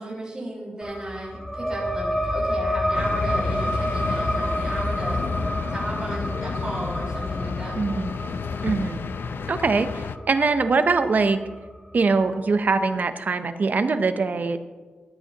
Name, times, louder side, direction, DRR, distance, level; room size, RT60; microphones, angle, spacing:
voice 1, 0.0-5.2 5.7-7.8, right 1 dB, 20° right, -6 dB, 4.0 m, -35 dB
sound 1, 0.8-11.9, equal, 5° left, 1.4 m, -29 dB
sound 2, 2.9-10.2, left 5 dB, 80° left, 0.4 m, -31 dB
voice 2, 7.8-8.1 8.6-9.0 9.5-11.4 11.9-14.6, right 4 dB, 50° right, 10 dB, 0.6 m, -22 dB
15.5 x 11.5 x 2.9 m, 1.4 s
wide cardioid pair, 135°, 4 cm